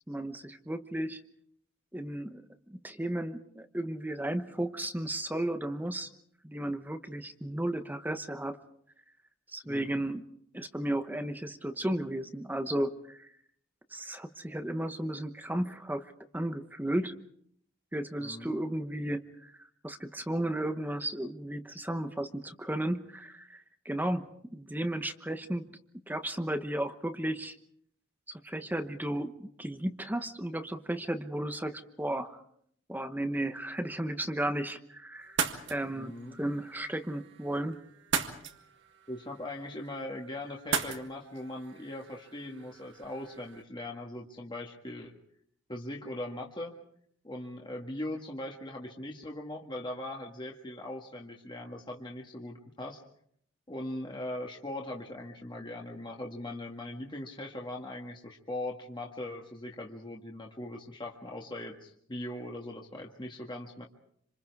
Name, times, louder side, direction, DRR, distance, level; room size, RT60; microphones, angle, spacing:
voice 1, 0.1-1.2 1.9-2.4 2.7-6.1 6.4-8.6 9.5-10.2 10.5-13.3 13.9-16.0 16.3-17.1 17.9-19.5 19.8-25.7 26.1-27.5 28.3-32.4 32.9-35.4 35.7-37.8, right 1 dB, 10° right, 8 dB, 1.0 m, -34 dB
voice 2, 9.6-10.0 18.2-18.6 35.9-36.4 39.1-45.2 45.7-46.7 47.2-53.0 53.7-63.9, left 1 dB, 25° left, 0 dB, 1.8 m, -40 dB
sound 1, 35.2-43.6, right 6 dB, 65° right, 1.9 m, -38 dB
27.0 x 26.5 x 4.8 m, 0.67 s
head